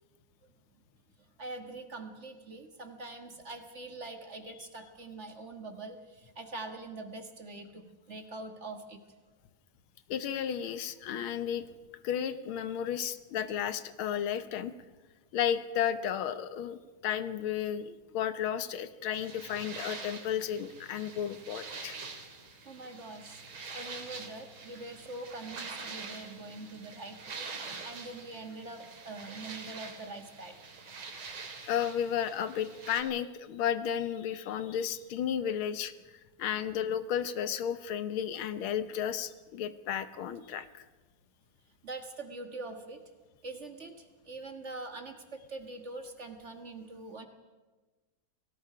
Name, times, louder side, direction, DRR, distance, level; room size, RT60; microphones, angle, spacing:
voice 1, 1.4-9.0 22.6-23.4 23.7-30.6 41.8-43.0 43.4-47.3, right 2 dB, 35° right, 5 dB, 1.7 m, -44 dB
voice 2, 10.1-11.7 12.0-14.7 15.3-22.0 31.7-35.9 36.4-40.8, left 9 dB, 85° left, 12 dB, 1.8 m, -33 dB
sound 1, 19.1-33.0, right 4 dB, 80° right, 3.0 m, -45 dB
29.0 x 18.0 x 5.0 m, 1.3 s
omnidirectional pair, 2.2 m